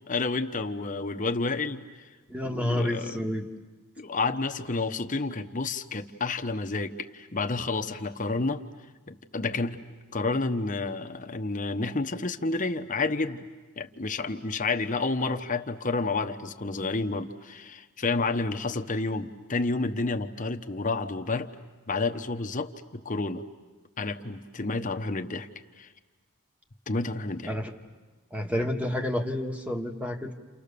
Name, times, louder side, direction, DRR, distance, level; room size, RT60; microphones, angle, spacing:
voice 1, 0.1-2.1 2.4-3.2 4.0-8.6 9.1-9.8 10.1-13.5 13.8-21.5 21.9-23.4 24.0-25.5 25.8-25.9 26.9-27.5, left 3 dB, 35° left, 7 dB, 1.0 m, -30 dB
voice 2, 2.3-3.5 27.5-27.7 28.3-30.3, left 1 dB, 5° right, 3 dB, 1.5 m, -29 dB
29.5 x 29.5 x 6.9 m, 1.3 s
head